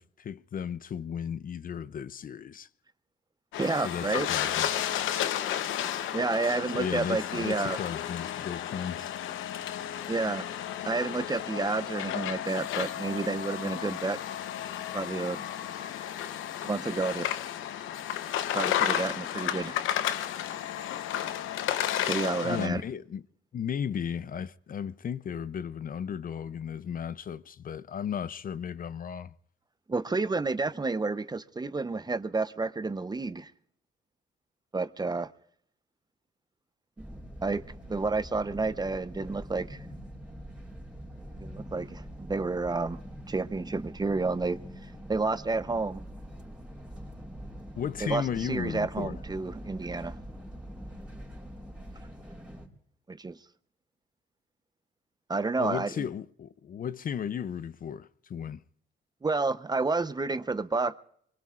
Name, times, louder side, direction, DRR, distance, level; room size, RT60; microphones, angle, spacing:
voice 1, 0.0-2.7 3.8-4.7 6.7-9.1 22.4-23.2 23.5-29.3 47.8-49.2 55.6-58.6, left 8 dB, 45° left, 0.5 m, -35 dB
sound 1, 3.5-22.7, left 11 dB, 90° left, 0.9 m, -32 dB
voice 2, 3.6-4.3 6.1-7.8 10.1-10.5 10.9-14.2 14.9-15.4 16.6-17.4 18.5-19.8 22.0-22.8 29.9-33.5 34.7-35.3 37.4-37.6 37.9-39.8 41.4-43.0 43.3-44.6 45.1-46.0 48.0-50.2 53.1-53.4 55.3-56.1 59.2-61.0, right 3 dB, 20° right, 0.7 m, -30 dB
sound 2, 37.0-52.7, equal, 5° right, 4.6 m, -44 dB
25.0 x 22.5 x 2.5 m
cardioid pair, 90°, 20 cm